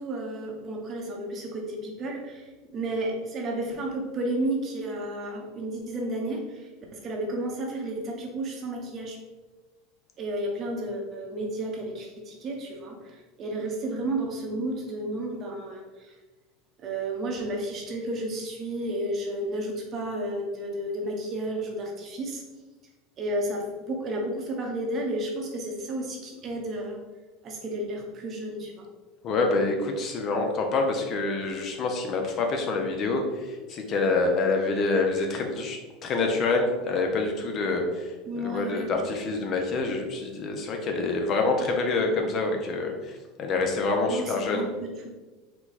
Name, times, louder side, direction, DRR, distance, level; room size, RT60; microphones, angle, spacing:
voice 1, 0.0-9.2 10.2-16.1 16.8-22.4 23.2-27.0 27.4-28.9 38.3-38.9 44.1-45.2, right 1 dB, 35° right, 0 dB, 0.9 m, -32 dB
voice 2, 29.2-44.7, left 3 dB, 40° left, 3 dB, 0.6 m, -27 dB
4.5 x 2.3 x 4.0 m, 1.2 s
supercardioid pair, 130°, 0 cm